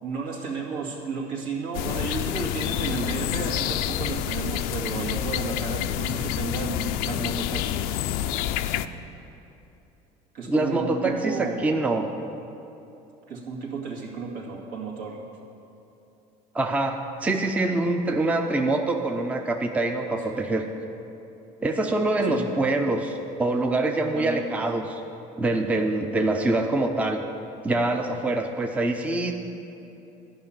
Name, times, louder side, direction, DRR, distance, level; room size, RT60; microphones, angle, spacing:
voice 1, 0.0-8.0 10.3-11.8 13.3-15.2 20.0-20.4 22.2-22.5 24.1-24.6, right 4 dB, 70° right, -2 dB, 2.2 m, -33 dB
sound 1, 1.7-8.9, left 11 dB, 75° left, 0.5 m, -28 dB
voice 2, 10.5-12.1 16.5-20.6 21.6-25.0 25.4-27.2 27.6-29.3, right 2 dB, 10° right, 4 dB, 0.5 m, -25 dB
12.5 x 5.9 x 8.9 m, 2.9 s
cardioid pair, 140°, 15 cm